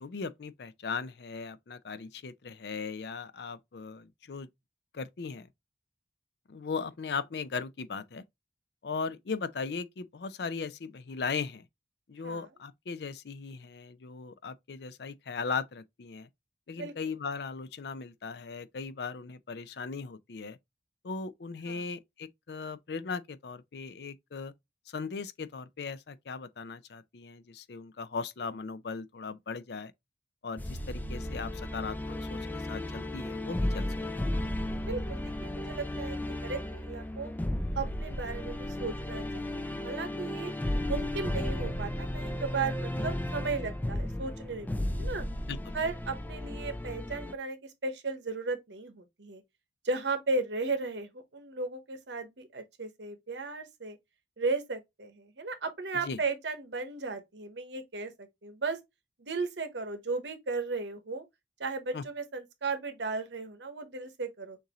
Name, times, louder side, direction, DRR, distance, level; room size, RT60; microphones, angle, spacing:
voice 1, 0.0-4.5 4.9-5.5 6.5-8.2 8.8-11.6 12.1-16.3 16.7-20.6 21.0-24.5 24.9-29.9 30.4-33.9 45.5-45.7 56.0-56.2 61.9-62.0, left 5 dB, 65° left, 0.5 m, -38 dB
sound 1, 30.6-47.3, left 1 dB, 10° left, 0.3 m, -34 dB
voice 2, 34.9-37.3 37.7-40.5 40.9-45.3 45.7-49.4 49.8-54.0 54.4-58.8 59.2-61.2 61.6-64.6, right 3 dB, 80° right, 1.1 m, -35 dB
6.6 x 2.6 x 2.9 m
head